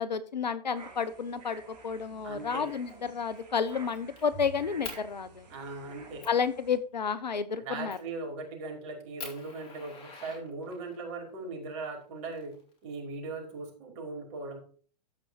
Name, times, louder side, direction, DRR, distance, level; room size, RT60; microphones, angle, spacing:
voice 1, 0.0-5.5 6.3-8.0, left 6 dB, 85° left, 15 dB, 1.2 m, -31 dB
sound 1, 0.7-6.8, right 4 dB, 75° right, 4.4 m, -52 dB
voice 2, 2.2-2.7 5.5-6.3 7.6-12.6 12.8-14.6, right 3 dB, 50° right, 2 dB, 5.6 m, -39 dB
Fire, 2.7-2.9 3.3-4.2 4.8-5.0 5.6-5.7 6.2-6.4 7.9-8.2 8.7-8.8 9.2-11.0 12.0-13.0, left 5 dB, 25° left, 4.1 m, -45 dB
Bowed string instrument, 4.3-6.9, right 5 dB, 55° left, 5.5 m, -51 dB
14.0 x 5.6 x 5.0 m, 0.42 s
hypercardioid pair, 115°, 21 cm